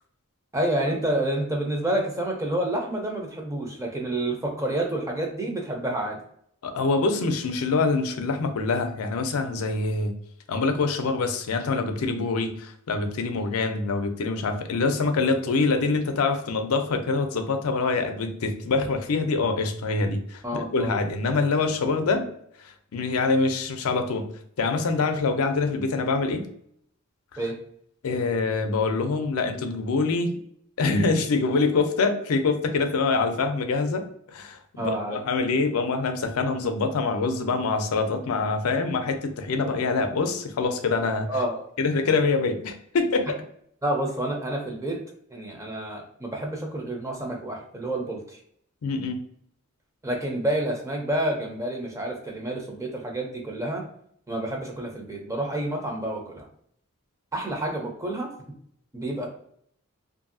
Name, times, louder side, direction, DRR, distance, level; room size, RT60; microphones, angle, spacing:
voice 1, 0.5-6.2 20.4-20.9 27.4-27.6 34.8-35.2 41.3-41.6 43.8-45.0 45.3-48.4 50.0-53.9 54.3-56.5 57.3-58.3 58.9-59.3, right 1 dB, 15° right, 1 dB, 0.5 m, -29 dB
voice 2, 6.6-10.1 10.5-22.3 22.6-24.3 24.6-26.4 27.3-27.4 28.0-30.4 30.8-34.0 34.3-41.3 41.8-43.4 48.8-49.2, left 3 dB, 90° left, 6 dB, 0.4 m, -25 dB
2.7 x 2.6 x 2.6 m, 0.68 s
head